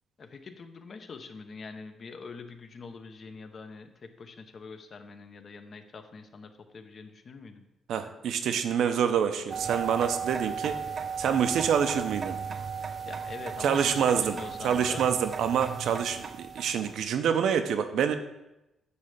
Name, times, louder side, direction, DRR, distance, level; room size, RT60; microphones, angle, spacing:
voice 1, 0.2-7.6 13.0-15.1, left 4 dB, 40° left, 8 dB, 0.7 m, -44 dB
voice 2, 7.9-10.8 11.2-12.4 13.6-14.4 14.6-18.2, right 8 dB, 75° right, 8 dB, 0.7 m, -26 dB
sound 1, 9.5-17.0, right 6 dB, 35° right, 0.3 m, -36 dB
9.6 x 3.3 x 6.7 m, 0.92 s
cardioid pair, 140°, 0 cm